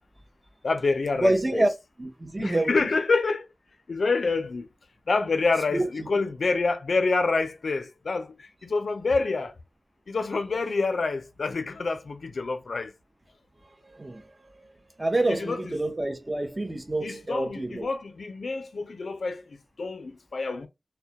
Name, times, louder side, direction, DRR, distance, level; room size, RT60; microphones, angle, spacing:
voice 1, 0.6-1.7 2.4-3.5 3.9-4.7 5.1-9.5 10.1-12.9 15.3-15.7 17.0-19.4 19.8-20.7, left 3 dB, 90° left, 0.4 m, -27 dB
voice 2, 1.2-1.7 2.0-2.9 5.7-6.1 13.6-14.7 15.0-17.9, right 1 dB, 30° right, 0.6 m, -28 dB
2.2 x 2.1 x 2.7 m
wide cardioid pair, 90°, 0 cm